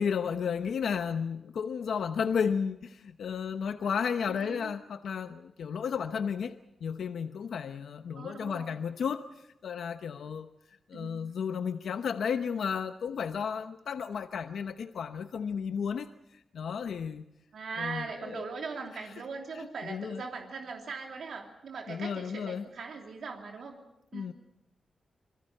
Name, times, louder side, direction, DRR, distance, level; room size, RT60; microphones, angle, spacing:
voice 1, 0.0-6.5 6.8-10.5 10.9-17.2 17.8-18.4 19.5-20.2 21.9-22.6 24.1-24.3, left 6 dB, 85° left, 8 dB, 0.9 m, -33 dB
voice 2, 4.3-4.7 8.1-8.8 10.9-11.2 17.5-23.8 24.1-24.3, right 4 dB, 80° right, 2 dB, 3.0 m, -40 dB
26.5 x 22.0 x 6.6 m, 0.85 s
wide cardioid pair, 145°, 0 cm